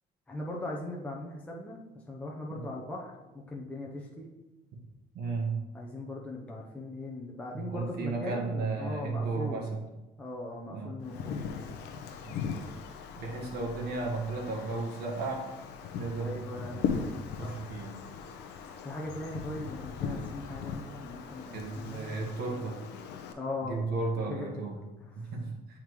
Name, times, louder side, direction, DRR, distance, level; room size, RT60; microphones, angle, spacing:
voice 1, 0.3-1.8 2.1-3.2 3.5-4.3 5.7-9.6 10.2-11.4 16.2-17.6 18.8-22.2 23.3-23.8 24.2-24.6 25.0-25.3, left 2 dB, 10° left, -2 dB, 0.7 m, -39 dB
voice 2, 5.1-5.6 7.5-9.8 10.7-10.9 12.2-12.4 13.1-15.4 15.9-18.0 21.5-22.8 23.6-24.8 25.2-25.8, right 3 dB, 65° right, 0 dB, 1.4 m, -34 dB
Wind, 11.0-23.3, left 6 dB, 75° left, 0.7 m, -39 dB
8.5 x 3.6 x 3.1 m, 1.1 s
cardioid pair, 140°, 18 cm